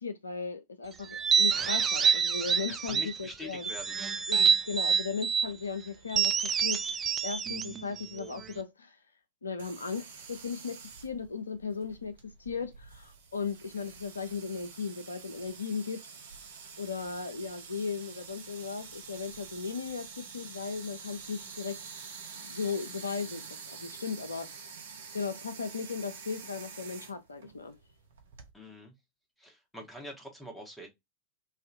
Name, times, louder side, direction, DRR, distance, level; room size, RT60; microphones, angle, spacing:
voice 1, 0.0-3.7 4.3-6.3 6.6-9.0 9.4-16.0 16.8-21.9 22.4-23.4 23.8-24.8 25.1-27.8, left 5 dB, 75° left, 0.4 m, -37 dB
sound 1, 1.1-3.2 3.6-5.5 6.1-8.6, right 7 dB, 20° right, 0.4 m, -27 dB
voice 2, 2.7-3.9 28.5-28.9 29.4-30.9, left 1 dB, 5° left, 1.2 m, -45 dB
sound 2, 9.6-28.5, right 5 dB, 65° right, 0.8 m, -47 dB
3.2 x 2.7 x 2.5 m
figure-of-eight pair, 90°, 0 cm